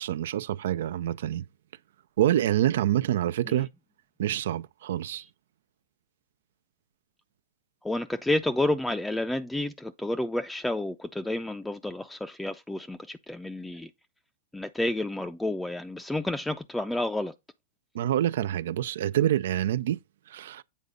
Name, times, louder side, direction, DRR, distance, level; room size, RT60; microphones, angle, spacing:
voice 1, 0.0-1.4 2.2-3.7 4.2-5.2 17.9-20.0 20.3-20.6, right 12 dB, 75° right, 0.4 m, -26 dB
voice 2, 7.8-13.9 14.5-17.3, left 1 dB, 5° left, 0.5 m, -30 dB
8.3 x 4.1 x 5.0 m
hypercardioid pair, 115°, 0 cm